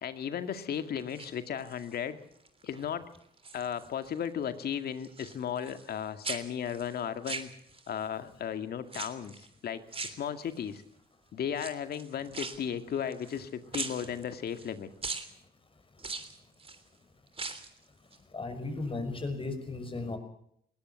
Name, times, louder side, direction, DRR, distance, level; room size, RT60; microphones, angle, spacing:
voice 1, 0.0-2.2 2.6-3.1 3.5-7.5 7.9-10.8 11.3-14.9 20.0-20.2, left 8 dB, 65° left, 9 dB, 2.1 m, -35 dB
sound 1, 1.0-2.0 2.4-2.8 3.1-4.2 4.4-6.0 6.2-8.0 8.9-9.5 9.9-10.8 11.5-13.4 13.7-14.7 15.0-15.3 16.0-16.8 17.3-17.8 18.1-18.2, right 4 dB, 35° right, 3.2 m, -40 dB
voice 2, 18.3-20.2, left 3 dB, 30° left, 7 dB, 6.0 m, -35 dB
20.5 x 17.5 x 8.3 m, 0.68 s
supercardioid pair, 70°, 17 cm